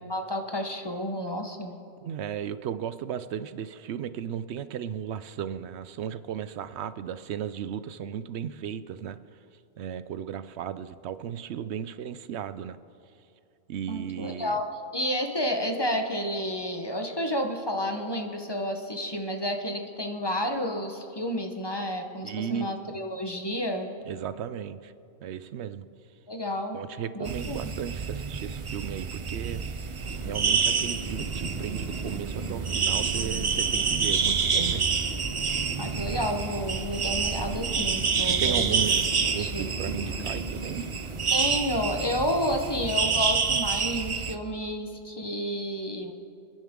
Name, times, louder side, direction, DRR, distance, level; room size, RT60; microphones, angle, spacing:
voice 1, 0.0-1.7 13.9-14.6 14.9-23.9 26.3-26.8 27.1-27.7 35.8-38.6 39.4-39.7 41.3-46.1, equal, 25° left, 4 dB, 1.0 m, -30 dB
voice 2, 2.0-9.2 9.8-12.8 13.7-14.6 22.2-22.8 24.1-24.9 25.2-25.9 26.7-29.6 30.2-34.9 38.2-40.8, right 9 dB, 80° right, 13 dB, 0.8 m, -35 dB
sound 1, 27.2-44.3, right 5 dB, 40° right, 0.5 m, -28 dB
sound 2, 30.0-42.2, left 1 dB, 65° left, 1.6 m, -42 dB
29.0 x 10.5 x 3.7 m, 2.7 s
omnidirectional pair, 1.1 m